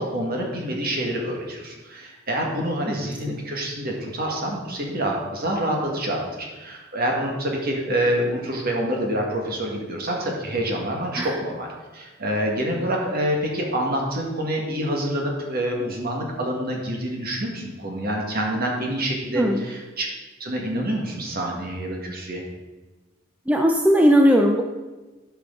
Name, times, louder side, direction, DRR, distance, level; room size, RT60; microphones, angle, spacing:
voice 1, 0.0-11.7 11.9-20.1 20.4-22.4, right 1 dB, 50° right, 0 dB, 1.7 m, -27 dB
voice 2, 23.5-24.7, equal, 5° right, 2 dB, 0.5 m, -18 dB
11.5 x 6.1 x 3.8 m, 1.2 s
head